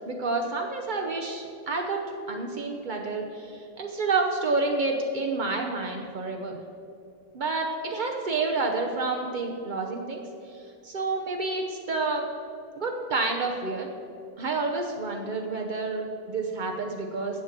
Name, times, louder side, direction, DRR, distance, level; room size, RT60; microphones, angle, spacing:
voice 1, 0.0-6.6 7.3-10.2 10.5-12.3 12.8-13.9 14.4-17.4, right 3 dB, 85° right, 2 dB, 0.4 m, -29 dB
7.6 x 7.4 x 7.4 m, 2.4 s
omnidirectional pair, 1.9 m